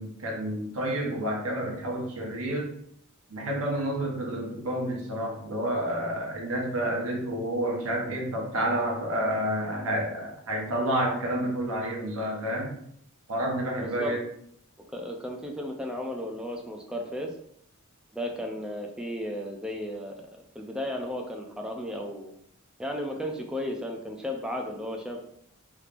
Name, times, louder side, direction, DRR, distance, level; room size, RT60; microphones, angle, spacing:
voice 1, 0.0-2.8 3.3-12.8 13.3-14.2, right 1 dB, 80° right, -1 dB, 0.9 m, -29 dB
voice 2, 13.8-14.2 14.9-17.3 18.1-22.3 22.8-25.2, left 1 dB, 5° right, 1 dB, 0.4 m, -34 dB
3.3 x 3.1 x 2.5 m, 0.69 s
head